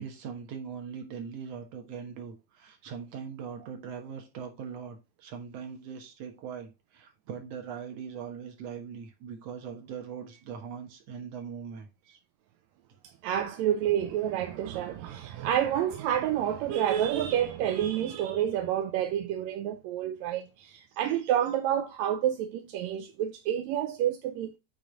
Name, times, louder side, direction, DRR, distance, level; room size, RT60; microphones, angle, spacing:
voice 1, 0.0-12.2, right 7 dB, 65° right, 2.3 m, -41 dB
voice 2, 13.2-24.6, right 10 dB, 80° right, 1.8 m, -29 dB
8.4 x 3.2 x 3.8 m
omnidirectional pair, 3.4 m